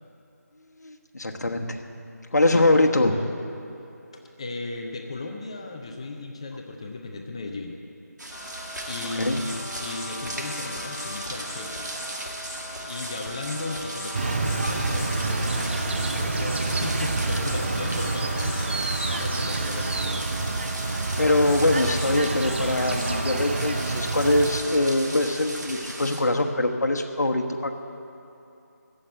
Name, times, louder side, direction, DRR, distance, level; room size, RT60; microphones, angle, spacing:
voice 1, 0.8-1.8 2.3-3.2 9.2-9.4 21.2-27.7, left 2 dB, 70° left, 3 dB, 1.3 m, -23 dB
voice 2, 2.5-3.3 4.4-7.8 8.9-11.9 12.8-20.2, left 2 dB, 20° left, 2 dB, 0.6 m, -36 dB
sound 1, 8.2-26.2, right 1 dB, 80° right, 2.2 m, -37 dB
sound 2, 8.3-25.0, left 1 dB, 45° left, 2.3 m, -39 dB
sound 3, 14.1-24.6, right 3 dB, 40° right, 0.6 m, -28 dB
14.0 x 7.8 x 8.2 m, 2.8 s
figure-of-eight pair, 165°, 9 cm